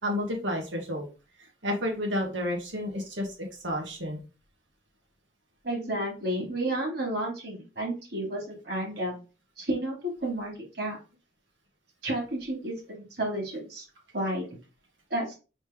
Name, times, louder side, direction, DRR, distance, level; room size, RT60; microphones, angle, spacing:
voice 1, 0.0-1.1 1.4-4.2, left 1 dB, 85° right, 1 dB, 1.6 m, -31 dB
voice 2, 5.6-9.2 9.6-11.0 12.0-13.8 14.1-14.4 15.1-15.3, right 1 dB, 60° right, -2 dB, 2.5 m, -31 dB
3.9 x 3.3 x 3.6 m, 0.32 s
head